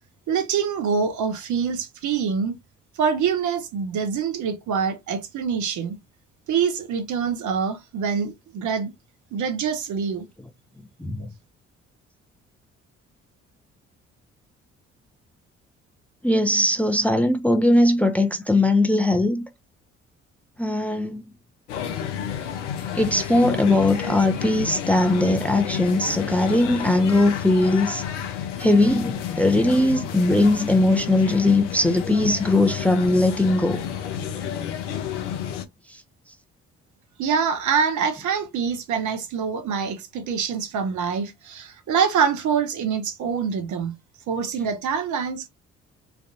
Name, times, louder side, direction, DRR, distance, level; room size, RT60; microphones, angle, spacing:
voice 1, 0.3-2.6 3.0-6.0 6.5-8.9 9.3-10.3 37.2-43.9 44.3-45.5, right 6 dB, 55° right, 0.8 m, -25 dB
voice 2, 16.2-19.4 20.6-21.2 22.9-28.0 28.6-33.8, left 2 dB, 5° left, 0.6 m, -20 dB
sound 1, 21.7-35.6, left 9 dB, 80° left, 0.5 m, -30 dB
3.3 x 2.5 x 2.5 m
figure-of-eight pair, 45°, 35 cm